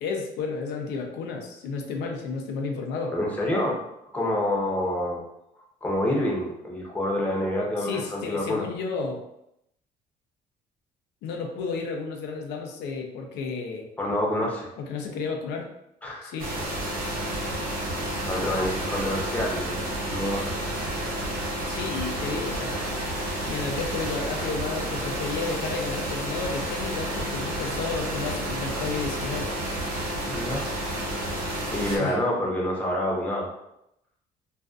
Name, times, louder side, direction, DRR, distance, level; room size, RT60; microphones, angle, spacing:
voice 1, 0.0-3.2 7.8-9.2 11.2-13.9 14.8-15.7 16.2-16.5 21.7-22.7 23.5-29.5 31.9-32.2, left 4 dB, 80° left, 2 dB, 0.4 m, -32 dB
voice 2, 3.1-3.8 4.1-5.2 5.8-8.6 14.0-14.7 16.0-16.3 17.0-17.1 18.2-20.4 30.3-30.7 31.7-33.5, left 1 dB, 10° left, -3 dB, 0.6 m, -27 dB
sound 1, 16.4-32.0, right 1 dB, 60° right, 0.8 m, -30 dB
2.4 x 2.3 x 2.4 m, 0.82 s
cardioid pair, 110°, 17 cm